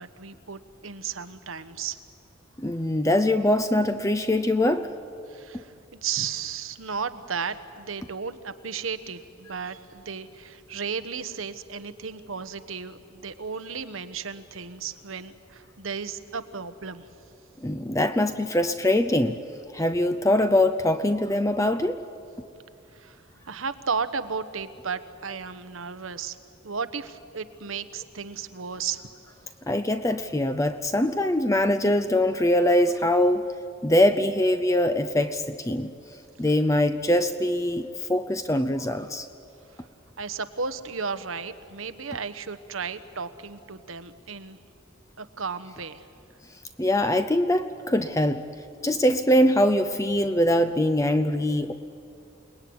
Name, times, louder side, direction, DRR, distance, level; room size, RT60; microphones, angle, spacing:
voice 1, 0.0-2.0 5.3-5.7 6.0-17.0 22.9-23.2 23.5-26.4 26.6-29.1 40.2-44.6 45.2-46.1, right 5 dB, 85° right, 11 dB, 1.2 m, -34 dB
voice 2, 2.6-4.9 17.6-19.4 19.7-22.0 29.7-33.5 33.8-35.9 36.4-39.3 46.8-48.5 48.8-51.7, left 1 dB, 15° left, 10 dB, 0.6 m, -23 dB
29.0 x 19.5 x 9.6 m, 2.6 s
head